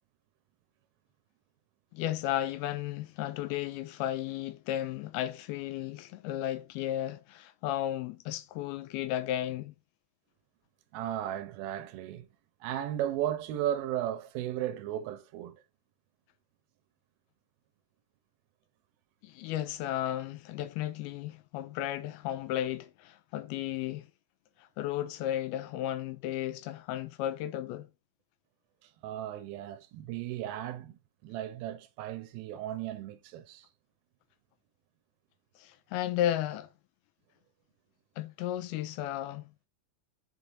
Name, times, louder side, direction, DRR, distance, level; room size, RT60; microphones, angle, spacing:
voice 1, 1.9-9.7 19.2-24.1 24.6-27.9 35.6-36.7 38.2-39.5, left 12 dB, 80° left, 2.3 m, -34 dB
voice 2, 10.9-12.3 12.6-15.6 28.8-33.7, right 11 dB, 80° right, 2.2 m, -35 dB
5.9 x 5.0 x 3.9 m
omnidirectional pair, 4.8 m